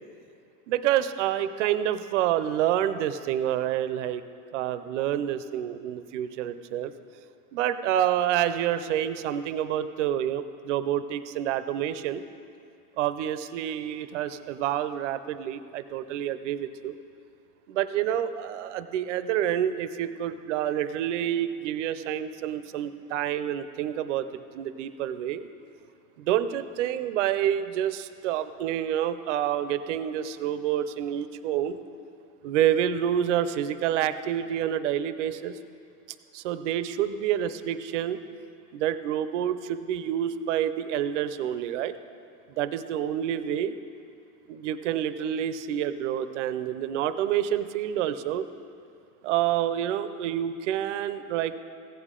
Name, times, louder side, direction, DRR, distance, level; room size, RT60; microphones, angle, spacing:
voice 1, 0.7-4.2 4.5-6.9 7.5-12.2 13.0-17.0 17.7-24.2 24.5-25.5 26.2-31.8 32.4-35.5 36.3-38.2 38.7-41.9 42.6-43.7 44.5-48.5 49.2-51.5, right 10 dB, 50° right, 12 dB, 0.5 m, -28 dB
16.0 x 8.2 x 3.7 m, 2.5 s
supercardioid pair, 175°, 47 cm